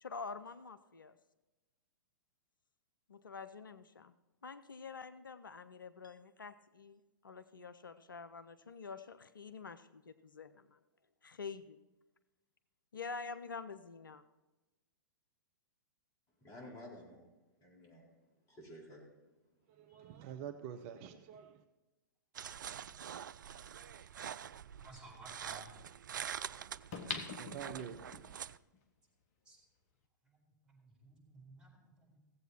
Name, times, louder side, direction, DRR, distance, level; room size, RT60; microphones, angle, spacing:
voice 1, 0.0-1.2 3.1-4.2 4.4-10.8 11.2-11.8 12.9-14.2, left 5 dB, 80° left, 13 dB, 0.5 m, -47 dB
voice 2, 16.4-17.3 17.6-18.1 18.5-19.1 19.9-20.2, left 1 dB, 30° left, -3 dB, 4.5 m, -53 dB
voice 3, 19.7-21.6 27.4-28.3, right 9 dB, 40° right, 8 dB, 0.8 m, -47 dB
sound 1, 22.3-28.6, right 8 dB, 70° right, 0.4 m, -46 dB
voice 4, 24.7-25.7 29.4-29.6 30.2-32.2, right 2 dB, 10° right, -4 dB, 4.3 m, -57 dB
sound 2, 26.9-28.2 28.7-28.8, left 5 dB, 50° left, 1.3 m, -42 dB
16.5 x 8.0 x 4.3 m, 1.1 s
figure-of-eight pair, 105°, 11 cm